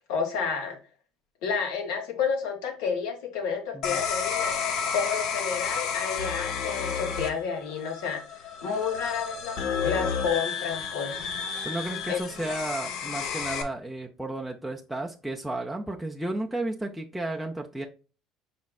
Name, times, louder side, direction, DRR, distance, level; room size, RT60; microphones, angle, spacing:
voice 1, 0.1-0.8 1.4-11.3 12.1-12.2, left 6 dB, 85° left, 1.3 m, -30 dB
sound 1, 3.8-13.6, left 6 dB, 60° left, 0.7 m, -31 dB
voice 2, 11.6-17.9, right 2 dB, ahead, 0.5 m, -33 dB
5.0 x 4.2 x 2.3 m
cardioid pair, 135°, 0 cm